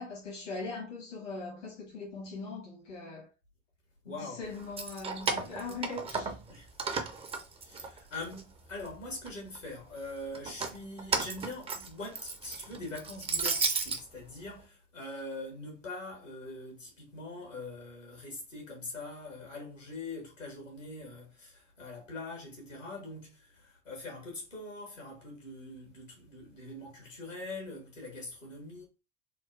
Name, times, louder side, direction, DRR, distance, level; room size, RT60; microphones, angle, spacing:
voice 1, 0.0-3.3 4.1-6.4, left 3 dB, 70° left, 1.2 m, -40 dB
voice 2, 4.0-4.4 5.4-5.5 6.5-6.7 7.5-28.8, left 2 dB, 85° left, 1.3 m, -43 dB
Keys jangling, 4.6-6.5 6.8-8.4 8.8-9.6 10.3-14.0, right 4 dB, 15° right, 0.4 m, -34 dB
3.7 x 2.2 x 2.4 m
figure-of-eight pair, 65°, 37 cm